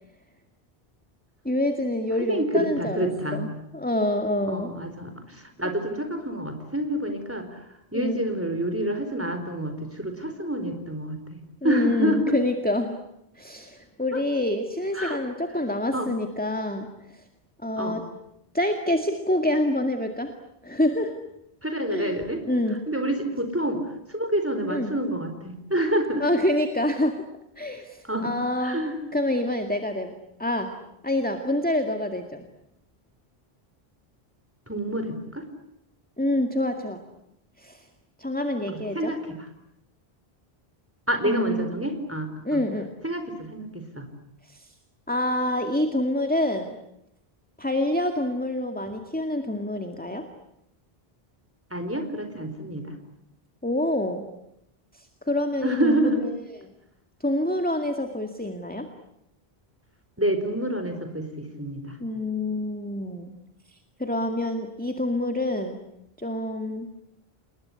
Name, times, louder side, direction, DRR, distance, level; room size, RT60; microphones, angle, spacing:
voice 1, 1.4-4.7 7.9-8.2 11.6-13.0 13.4-17.2 17.6-18.0 18.5-20.3 20.6-21.1 21.9-22.8 24.7-24.9 26.2-27.2 27.6-28.8 29.1-30.1 30.4-30.7 31.0-32.3 36.2-37.0 37.6-37.8 38.2-39.1 41.2-41.8 42.4-42.9 44.5-44.7 45.1-46.8 47.6-50.3 53.6-54.2 54.9-56.4 57.2-58.9 62.0-63.3 64.0-65.8 66.2-66.9, left 1 dB, 10° left, 5 dB, 2.1 m, -27 dB
voice 2, 2.3-3.5 4.5-5.1 5.6-7.6 7.9-12.2 14.1-14.2 14.9-15.2 15.9-16.1 17.8-18.0 21.6-22.4 22.9-23.8 24.1-26.3 28.0-28.3 28.6-29.0 34.7-35.5 38.7-39.4 41.1-42.6 43.0-44.1 51.7-52.9 55.6-56.2 60.2-61.9, right 1 dB, 15° right, 6 dB, 4.5 m, -28 dB
28.5 x 21.0 x 9.8 m, 0.80 s
omnidirectional pair, 1.0 m